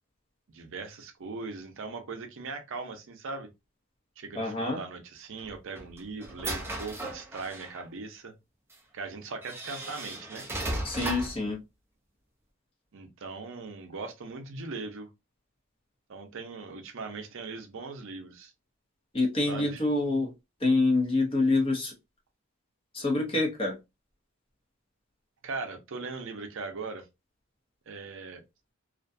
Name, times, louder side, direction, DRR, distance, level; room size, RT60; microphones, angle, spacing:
voice 1, 0.5-3.5 4.2-8.3 8.9-10.5 12.9-15.1 16.1-18.5 19.5-19.8 25.4-27.1 27.9-28.4, right 4 dB, 65° right, 0.6 m, -39 dB
voice 2, 4.3-4.8 10.8-11.6 19.1-20.3 20.6-21.9 22.9-23.8, left 2 dB, 25° left, 0.8 m, -26 dB
sound 1, 5.4-7.8 8.7-8.8 9.4-11.5, right 1 dB, 10° right, 0.5 m, -36 dB
2.4 x 2.2 x 2.5 m
head